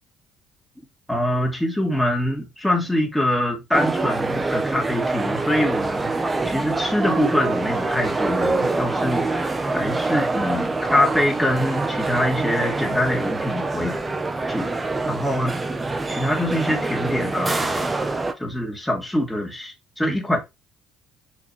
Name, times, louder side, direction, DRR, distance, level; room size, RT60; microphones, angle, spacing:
voice 1, 1.1-14.0 14.5-15.6 16.1-18.1 18.4-20.4, left 1 dB, 5° left, 2.7 m, -24 dB
sound 1, 3.7-18.3, right 3 dB, 20° right, 1.2 m, -25 dB
6.6 x 5.4 x 3.5 m
supercardioid pair, 90°, 0 cm